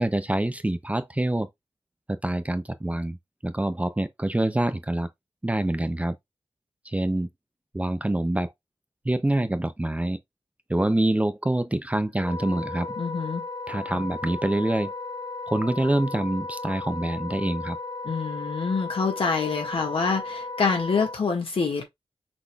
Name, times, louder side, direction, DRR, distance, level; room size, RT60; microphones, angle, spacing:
voice 1, 0.0-1.5 2.1-3.2 3.4-5.1 5.4-6.2 6.9-7.3 7.7-8.5 9.1-10.2 10.7-12.9 13.7-14.9 15.5-17.8, right 1 dB, 15° right, 0.5 m, -26 dB
Wind instrument woodwind instrument, 12.2-21.2, left 3 dB, 40° left, 1.1 m, -35 dB
voice 2, 13.0-13.4 18.0-21.8, left 4 dB, 65° left, 1.6 m, -26 dB
6.0 x 3.6 x 2.3 m
wide cardioid pair, 90°, 10 cm